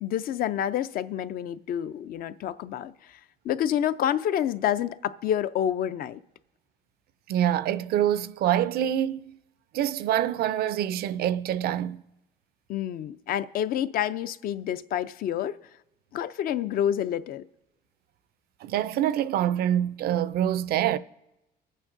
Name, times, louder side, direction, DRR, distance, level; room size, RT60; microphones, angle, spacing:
voice 1, 0.0-2.9 3.4-6.2 12.7-15.6 16.1-17.4, left 10 dB, 60° left, 0.5 m, -28 dB
voice 2, 7.3-9.3 9.7-12.0 18.6-21.0, right 11 dB, 65° right, 0.5 m, -25 dB
22.0 x 8.6 x 2.6 m
cardioid pair, 110°, 17 cm